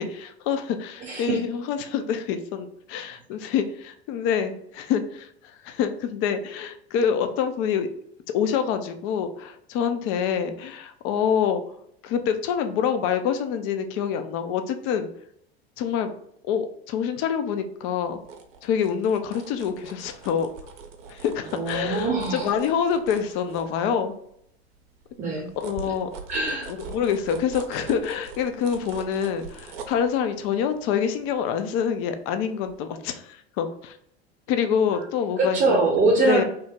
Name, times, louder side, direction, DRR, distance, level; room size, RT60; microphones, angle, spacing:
voice 1, 0.0-7.9 8.3-11.6 12.0-15.1 15.8-16.1 16.4-18.2 18.6-20.5 21.1-24.1 25.6-26.1 26.7-34.0 34.5-35.8 36.3-36.4, left 7 dB, 40° left, 8 dB, 0.4 m, -26 dB
voice 2, 1.0-1.4 21.5-22.5 25.2-25.5 26.3-26.7 35.4-36.4, right 3 dB, 25° right, -2 dB, 0.8 m, -23 dB
sound 1, 18.0-24.3 24.7-32.3 32.7-32.8, right 5 dB, 65° right, 0.6 m, -43 dB
2.9 x 2.1 x 3.4 m, 0.70 s
figure-of-eight pair, 85°, 32 cm